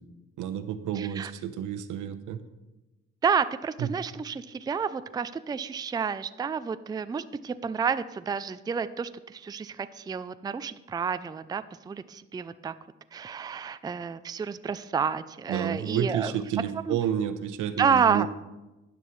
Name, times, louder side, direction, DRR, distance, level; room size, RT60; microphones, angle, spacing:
voice 1, 0.4-2.4 3.8-3.9 15.5-18.3, right 9 dB, 85° right, 10 dB, 0.9 m, -30 dB
voice 2, 1.0-1.3 3.2-12.7 13.1-16.3 16.9-17.0 17.8-18.3, right 6 dB, 15° right, 13 dB, 0.4 m, -30 dB
12.5 x 10.0 x 3.2 m, 1.0 s
cardioid pair, 90°, 30 cm